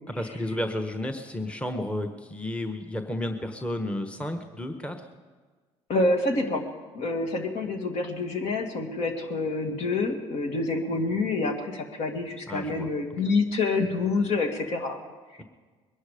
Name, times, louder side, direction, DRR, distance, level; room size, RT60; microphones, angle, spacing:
voice 1, 0.1-5.0 12.5-12.9, left 1 dB, 10° left, 6 dB, 1.2 m, -32 dB
voice 2, 5.9-6.7 6.9-15.0 15.4-15.5, left 3 dB, 60° left, 4 dB, 2.1 m, -27 dB
21.5 x 11.0 x 5.1 m, 1.4 s
supercardioid pair, 80°, 13 cm